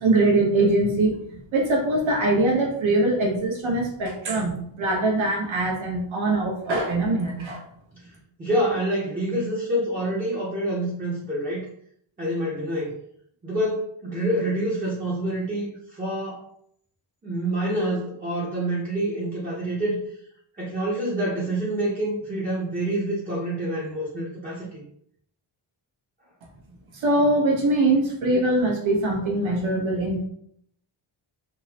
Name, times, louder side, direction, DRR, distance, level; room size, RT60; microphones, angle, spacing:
voice 1, 0.0-7.6 26.9-30.2, right 2 dB, 70° right, -1 dB, 1.0 m, -22 dB
voice 2, 8.4-11.6 12.2-12.9 13.4-16.4 17.2-20.0 20.6-24.7, right 1 dB, 15° right, -7 dB, 0.6 m, -27 dB
3.6 x 2.1 x 2.8 m, 0.68 s
wide cardioid pair, 170°, 49 cm